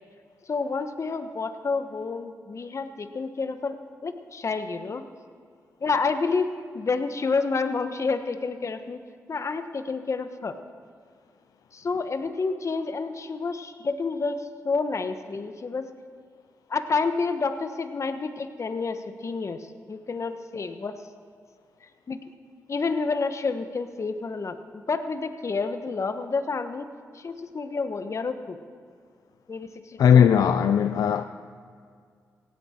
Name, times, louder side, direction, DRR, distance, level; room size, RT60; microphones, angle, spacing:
voice 1, 0.5-3.8 4.0-5.0 5.8-9.0 9.3-10.5 11.7-15.9 16.7-21.0 22.1-22.2 22.7-26.9 27.1-28.6 29.5-30.3, left 4 dB, 50° left, 1.2 m, -29 dB
voice 2, 30.0-31.2, left 8 dB, 75° left, 0.5 m, -18 dB
18.5 x 16.0 x 4.5 m
supercardioid pair, 50°, 6 cm